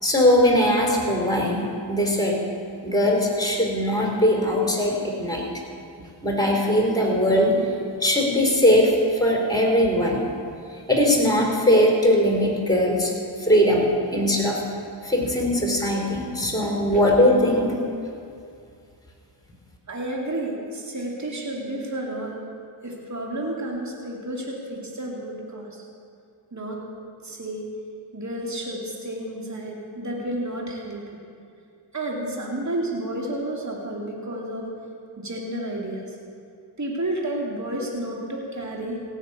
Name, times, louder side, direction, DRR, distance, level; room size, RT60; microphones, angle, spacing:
voice 1, 0.0-2.4 2.8-5.4 6.2-7.7 8.0-8.9 9.2-10.3 10.9-13.1 13.4-14.6 15.0-17.8, left 1 dB, 10° left, -1 dB, 4.3 m, -20 dB
voice 2, 19.9-22.4 22.8-25.7 26.5-26.8 27.2-27.6 28.1-31.1 31.9-34.7 35.2-36.0 36.8-39.0, right 1 dB, 35° right, -2 dB, 2.6 m, -31 dB
16.5 x 6.6 x 8.4 m, 2.4 s
cardioid pair, 45°, 49 cm